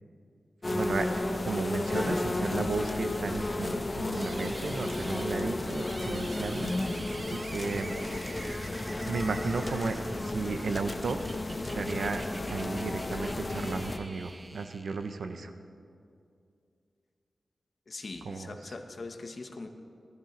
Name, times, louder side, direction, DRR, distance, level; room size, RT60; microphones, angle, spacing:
sound 1, 0.6-14.0, left 2 dB, 25° left, 0.7 m, -33 dB
voice 1, 0.7-6.7 7.3-8.0 9.1-11.2 11.7-12.2 12.5-15.5 18.2-18.7, right 4 dB, 80° right, 7 dB, 0.7 m, -34 dB
sound 2, 4.1-15.4, right 2 dB, 25° right, 0.4 m, -46 dB
voice 2, 17.9-19.7, left 3 dB, 45° left, 4 dB, 1.1 m, -41 dB
19.5 x 13.5 x 3.2 m, 2.4 s
wide cardioid pair, 135°, 0 cm